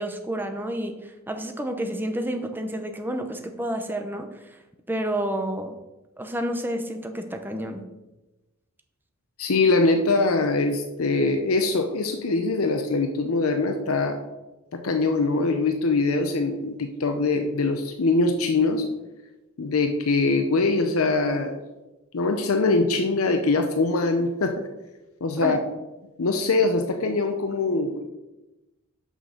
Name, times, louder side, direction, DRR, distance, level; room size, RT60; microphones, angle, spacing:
voice 1, 0.0-4.3 4.9-5.8 6.2-7.8 25.4-25.6, right 1 dB, 10° right, 5 dB, 0.8 m, -30 dB
voice 2, 9.4-14.2 14.7-18.9 19.6-21.6 22.1-24.6 25.2-25.6 26.2-28.0, left 3 dB, 75° left, 5 dB, 0.7 m, -23 dB
6.3 x 5.3 x 6.4 m, 1.0 s
head